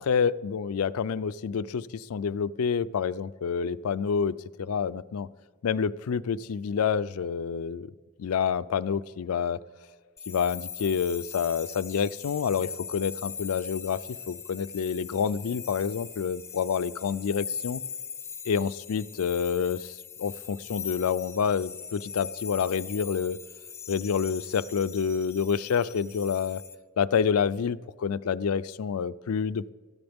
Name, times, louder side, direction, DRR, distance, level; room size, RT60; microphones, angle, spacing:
voice 1, 0.0-5.3 5.6-7.9 8.2-9.6 10.3-17.8 18.5-23.4 23.9-26.6 27.0-29.7, left 6 dB, 90° left, 16 dB, 0.4 m, -28 dB
sound 1, 10.2-26.7, left 7 dB, 10° left, 0.5 m, -41 dB
19.5 x 14.0 x 3.5 m, 1.5 s
head